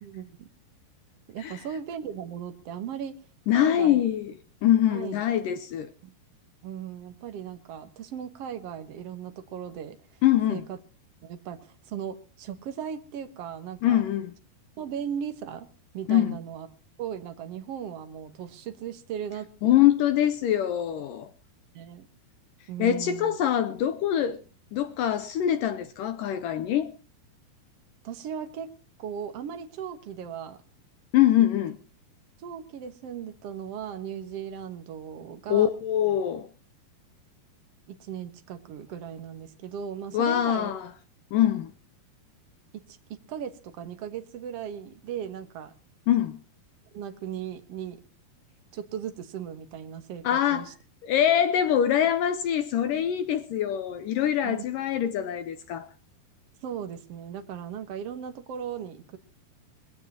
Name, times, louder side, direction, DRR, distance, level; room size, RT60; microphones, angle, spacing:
voice 1, 0.0-0.5 1.3-3.1 3.5-4.0 4.9-5.2 6.0-6.1 6.6-10.0 10.5-10.8 11.2-14.0 14.8-15.7 15.9-16.7 17.0-19.7 21.7-22.1 22.7-23.4 28.0-28.7 29.0-30.6 31.4-31.5 32.4-35.7 37.9-40.7 42.7-45.7 46.9-48.0 48.7-50.7 54.4-54.7 56.6-59.2, right 8 dB, 70° right, 1.4 m, -37 dB
voice 2, 3.5-4.3 4.6-5.9 10.2-10.7 13.8-14.3 16.1-16.4 19.6-21.3 22.8-24.4 24.7-26.9 31.1-31.8 35.5-36.5 40.1-40.9 41.3-41.7 46.1-46.4 50.2-50.7 51.1-55.9, left 11 dB, 75° left, 2.0 m, -24 dB
22.0 x 17.0 x 2.9 m
omnidirectional pair, 4.8 m